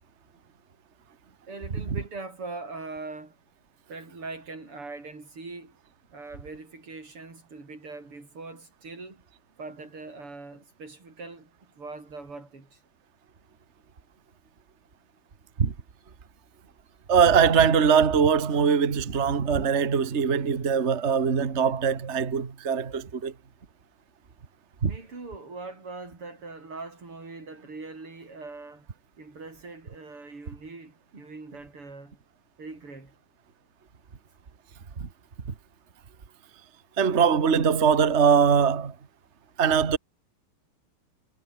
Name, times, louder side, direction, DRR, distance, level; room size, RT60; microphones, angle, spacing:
voice 1, 1.5-3.4 3.9-5.8 6.1-9.2 9.6-12.8 24.8-28.9 29.2-32.2 32.6-33.1, right 3 dB, 85° right, 6.9 m, -41 dB
voice 2, 17.1-23.3 24.8-24.9 37.0-38.9 39.6-40.0, right 6 dB, 35° right, 1.8 m, -22 dB
omnidirectional pair, 2.4 m